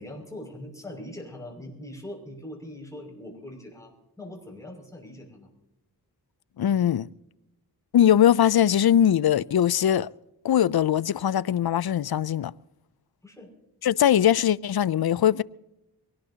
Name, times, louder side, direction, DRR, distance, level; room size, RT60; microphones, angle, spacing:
voice 1, 0.0-5.5 13.2-13.5, left 1 dB, 10° left, 5.9 m, -41 dB
voice 2, 6.6-7.1 7.9-10.1 10.4-12.5 13.8-15.4, left 10 dB, 70° left, 0.5 m, -21 dB
23.5 x 18.5 x 2.8 m
wide cardioid pair, 65°, 39 cm